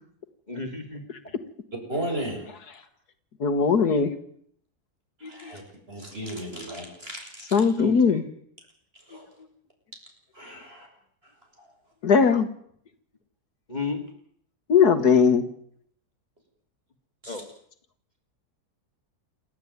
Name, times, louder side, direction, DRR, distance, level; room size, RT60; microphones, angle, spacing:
voice 1, 0.5-1.3 7.8-8.2 13.7-14.0 17.3-17.5, left 3 dB, 25° left, 4 dB, 2.7 m, -33 dB
voice 2, 1.9-2.4 5.2-5.6 5.9-7.6 9.1-9.3 10.3-10.9 11.6-11.7 17.2-17.4, right 1 dB, 35° right, 2 dB, 7.7 m, -35 dB
voice 3, 3.4-4.1 5.2-5.6 7.5-8.2 12.0-12.5 14.7-15.5, left 6 dB, 75° left, 11 dB, 2.1 m, -20 dB
28.5 x 13.5 x 9.6 m, 0.67 s
omnidirectional pair, 1.7 m